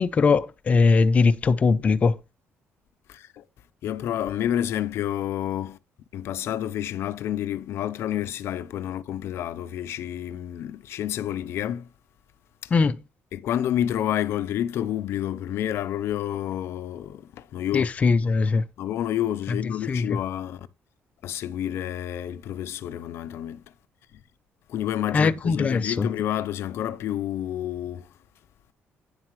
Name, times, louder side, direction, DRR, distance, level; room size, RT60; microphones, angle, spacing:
voice 1, 0.0-2.2 12.7-13.0 17.7-18.6 19.9-20.2 25.1-26.1, left 4 dB, 30° left, 0.6 m, -20 dB
voice 2, 3.1-3.4 3.8-5.8 6.1-11.9 12.6-12.7 13.3-17.9 18.8-20.7 21.2-23.6 24.1-24.2 24.7-28.1, left 11 dB, 70° left, 0.6 m, -29 dB
9.7 x 7.4 x 3.1 m
cardioid pair, 160°, 5 cm